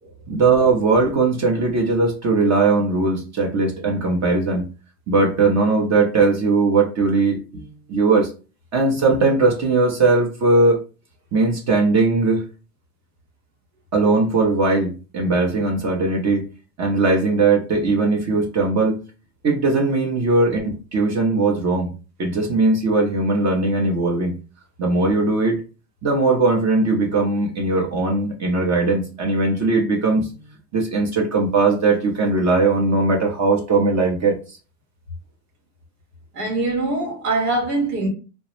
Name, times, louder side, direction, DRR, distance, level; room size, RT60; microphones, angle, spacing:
voice 1, 0.3-4.7 5.1-8.3 8.7-10.8 11.3-12.4 13.9-16.5 16.8-19.0 19.4-21.9 22.2-24.4 24.8-25.6 26.0-30.4 30.7-34.4, right 3 dB, 35° right, 0.7 m, -19 dB
voice 2, 36.3-38.1, right 2 dB, 85° right, 1.1 m, -23 dB
2.2 x 2.0 x 3.0 m
hypercardioid pair, 80°, 47 cm